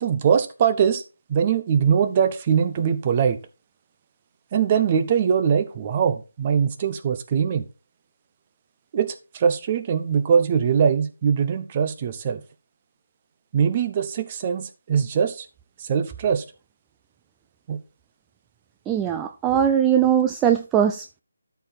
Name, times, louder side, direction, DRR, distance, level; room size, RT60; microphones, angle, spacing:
voice 1, 0.0-1.0 1.3-3.4 4.5-7.7 8.9-12.4 13.5-15.5 15.8-16.4 17.7-17.8, right 7 dB, 30° right, 11 dB, 1.0 m, -22 dB
voice 2, 18.9-21.2, right 9 dB, 10° right, 6 dB, 0.4 m, -20 dB
12.5 x 4.8 x 4.2 m, 0.31 s
figure-of-eight pair, 155°, 0 cm